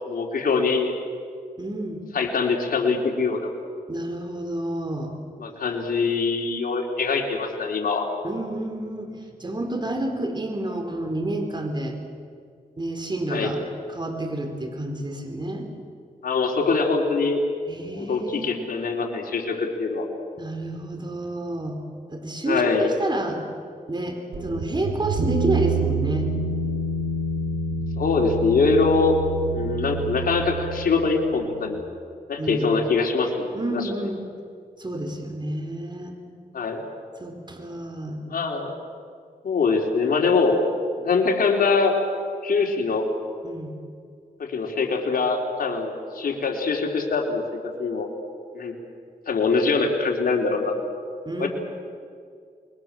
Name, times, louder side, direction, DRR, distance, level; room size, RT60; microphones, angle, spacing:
voice 1, 0.1-0.9 2.1-3.5 5.4-8.1 13.3-13.5 16.2-17.4 17.9-20.1 22.5-22.9 28.0-29.1 29.5-31.8 32.3-33.9 36.5-36.8 38.3-38.7 39.4-40.6 41.0-42.0 42.4-43.1 44.4-47.4 47.8-48.1 48.5-48.7 49.3-50.7 51.4-51.5, left 4 dB, 70° left, 1 dB, 3.8 m, -23 dB
voice 2, 1.6-2.0 3.9-5.1 8.2-12.0 12.8-13.6 13.9-15.7 17.7-18.6 20.4-21.8 22.1-23.4 23.9-26.3 32.4-32.8 33.5-34.2 34.8-36.2 37.2-38.2 43.4-43.7 51.2-51.5, right 1 dB, 30° right, 5 dB, 4.2 m, -29 dB
sound 1, 24.3-31.7, right 3 dB, 90° right, 2.2 m, -28 dB
28.0 x 21.5 x 7.6 m, 2.2 s
cardioid pair, 70°, 15 cm